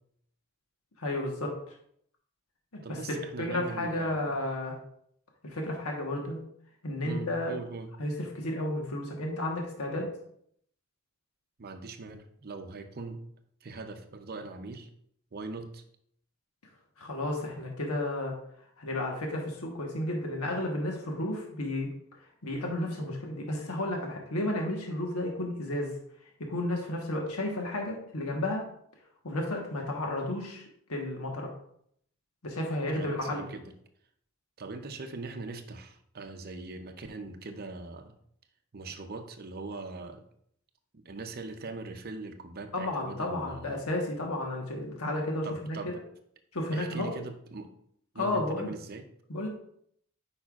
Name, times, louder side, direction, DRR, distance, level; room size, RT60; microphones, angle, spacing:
voice 1, 1.0-1.7 2.7-4.8 5.4-6.4 6.8-7.5 8.0-10.1 17.0-18.3 18.8-21.9 22.4-25.9 26.4-28.6 29.2-30.6 30.9-31.5 32.4-33.5 42.7-46.0 46.5-47.1 48.1-48.7 49.3-49.5, left 1 dB, 80° left, 1 dB, 1.2 m, -32 dB
voice 2, 2.8-4.4 7.0-7.9 11.6-13.2 13.6-14.9 15.3-15.8 32.9-33.6 34.6-38.2 38.7-40.2 40.9-43.8 45.4-46.0 46.7-47.7 48.1-49.1, right 3 dB, 45° right, 7 dB, 0.6 m, -41 dB
8.5 x 5.4 x 2.4 m, 0.68 s
head